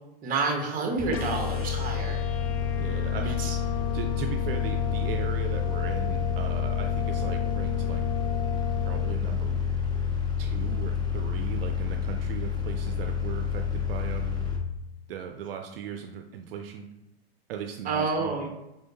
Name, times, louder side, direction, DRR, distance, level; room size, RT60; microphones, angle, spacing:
voice 1, 0.2-2.2 3.2-3.6 17.8-18.5, right 4 dB, 25° right, 1 dB, 0.9 m, -29 dB
sound 1, 1.0-14.6, left 7 dB, 15° left, 0.6 m, -29 dB
sound 2, 1.1-9.1, left 9 dB, 75° left, 0.5 m, -36 dB
voice 2, 2.8-8.0 8.8-9.7 10.4-14.4 15.1-16.9 17.5-18.4, right 8 dB, 70° right, 4 dB, 0.5 m, -38 dB
3.8 x 3.3 x 2.8 m, 0.92 s
hypercardioid pair, 110°, 30 cm